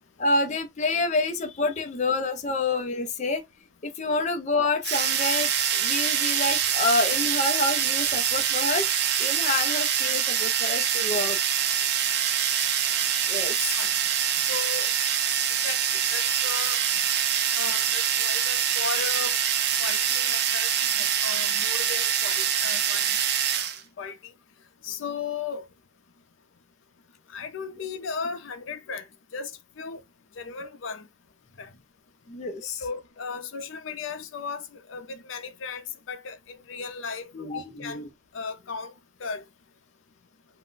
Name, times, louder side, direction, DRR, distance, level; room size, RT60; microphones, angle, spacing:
voice 1, 0.2-3.4 3.8-8.9 9.2-11.4 13.3-13.6 32.3-32.8 37.3-38.0, left 2 dB, 35° left, 0.4 m, -28 dB
sound 1, 4.8-23.8, right 9 dB, 55° right, 0.5 m, -25 dB
voice 2, 14.5-14.9 15.6-16.8 17.5-19.4 19.8-23.2 24.0-24.3 24.8-25.7 27.3-29.1 29.3-30.0 30.4-31.1 31.6-31.7 32.8-38.0 38.3-38.9 39.2-39.4, left 5 dB, 90° left, 0.5 m, -36 dB
2.5 x 2.0 x 3.7 m
head